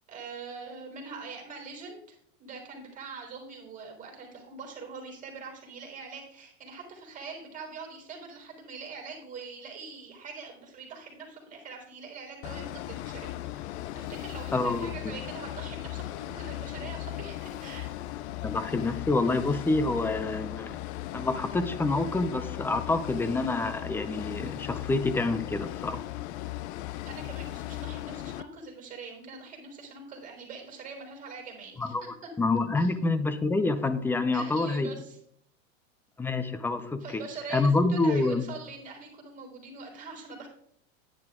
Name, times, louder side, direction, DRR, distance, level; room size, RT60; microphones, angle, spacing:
voice 1, 0.1-18.0 27.0-32.3 32.8-32.9 34.3-35.2 37.0-40.5, right 4 dB, 20° right, 1 dB, 4.2 m, -43 dB
sound 1, 12.4-28.4, left 15 dB, 60° left, 0.6 m, -37 dB
voice 2, 14.5-14.9 18.4-20.8 21.1-26.0 31.8-34.9 36.2-37.2 37.5-38.4, left 3 dB, 5° left, 12 dB, 0.5 m, -27 dB
10.5 x 10.0 x 3.7 m, 0.68 s
supercardioid pair, 135°, 39 cm